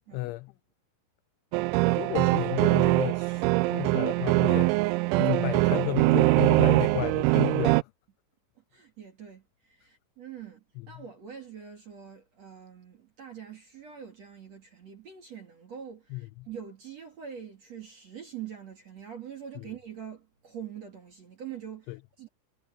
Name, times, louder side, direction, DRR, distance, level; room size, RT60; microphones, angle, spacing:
voice 1, 0.1-0.5 2.0-4.7 5.2-7.9 10.8-11.0 16.1-16.5 19.6-19.7 21.9-22.0, left 21 dB, 90° left, 2.6 m, -33 dB
sound 1, 1.5-7.8, right 23 dB, 90° right, 2.6 m, -23 dB
voice 2, 8.7-22.3, right 8 dB, 45° right, 2.3 m, -44 dB
omnidirectional pair, 5.9 m